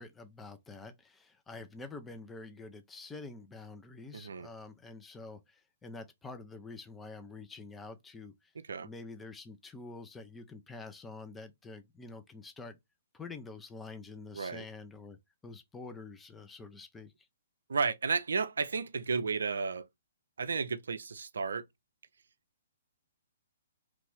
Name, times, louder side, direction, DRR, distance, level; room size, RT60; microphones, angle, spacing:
voice 1, 0.0-8.5 8.8-12.8 13.1-15.2 15.4-17.1, left 3 dB, 10° left, 0.5 m, -47 dB
voice 2, 4.1-4.5 8.7-8.9 14.3-14.7 17.7-19.9 20.4-21.6, right 5 dB, 70° right, 0.4 m, -33 dB
3.0 x 2.5 x 3.4 m
figure-of-eight pair, 120°, 0 cm